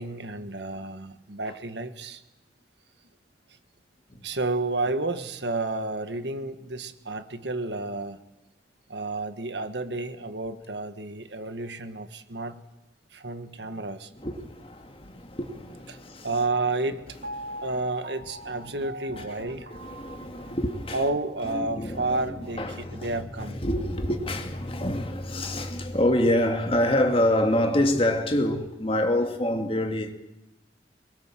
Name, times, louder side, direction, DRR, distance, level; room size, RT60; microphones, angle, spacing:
voice 1, 0.0-2.2 4.2-8.2 8.9-12.6 13.1-14.1 15.9-16.0 16.2-17.1 17.6-19.7 20.9-23.6, right 2 dB, 70° right, 1.6 m, -31 dB
voice 2, 14.1-16.3 17.4-17.7 19.1-21.1 21.4-30.1, left 1 dB, 30° left, 2.3 m, -27 dB
Piano, 17.2-21.3 21.8-21.9, right 1 dB, 55° right, 1.5 m, -42 dB
24.0 x 21.5 x 7.6 m
head